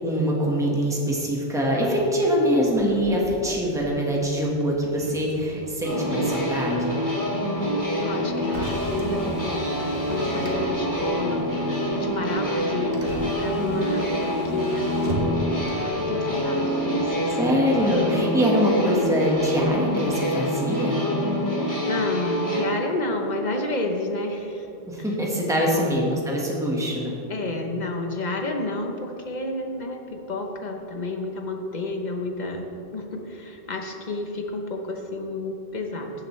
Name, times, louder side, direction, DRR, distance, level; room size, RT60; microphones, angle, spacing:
voice 1, 0.0-6.9 17.3-21.0 24.9-27.2, equal, 5° right, -3 dB, 1.4 m, -24 dB
Motor vehicle (road), 2.6-19.7, equal, 65° right, 1.5 m, -40 dB
sound 1, 5.8-22.6, equal, 20° left, 2.2 m, -26 dB
voice 2, 8.0-11.5 11.9-15.4 15.8-17.4 21.6-24.7 25.6-26.1 27.3-36.1, left 2 dB, 45° left, 3 dB, 1.0 m, -30 dB
15.5 x 7.0 x 3.2 m, 2.8 s
omnidirectional pair, 1.1 m